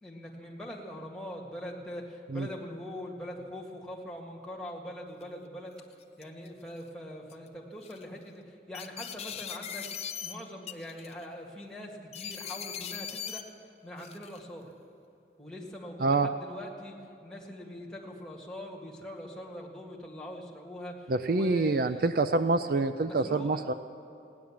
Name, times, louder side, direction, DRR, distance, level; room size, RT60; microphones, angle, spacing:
voice 1, 0.0-5.7 6.2-9.9 10.2-14.7 15.4-17.0 17.2-22.1 23.1-23.7, left 1 dB, 5° left, -2 dB, 1.8 m, -42 dB
sound 1, 5.2-5.3 5.9-6.5 7.3-7.5 7.8-8.0 8.7-10.3 10.7-11.2 12.1-13.4 14.0-14.4, left 8 dB, 35° left, 0.6 m, -40 dB
voice 2, 21.1-23.7, right 3 dB, 50° right, 10 dB, 0.4 m, -26 dB
16.5 x 10.5 x 7.3 m, 2.8 s
head